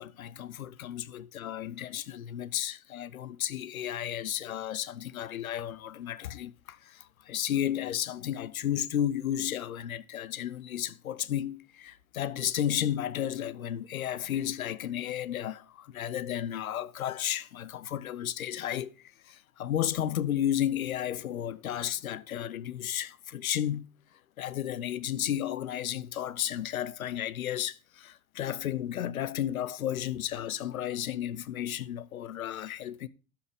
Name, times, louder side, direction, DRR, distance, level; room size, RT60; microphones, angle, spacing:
voice 1, 0.0-18.9 19.3-23.9 24.4-33.1, left 11 dB, 80° left, 0.6 m, -33 dB
12.5 x 5.7 x 3.5 m
figure-of-eight pair, 80°, 42 cm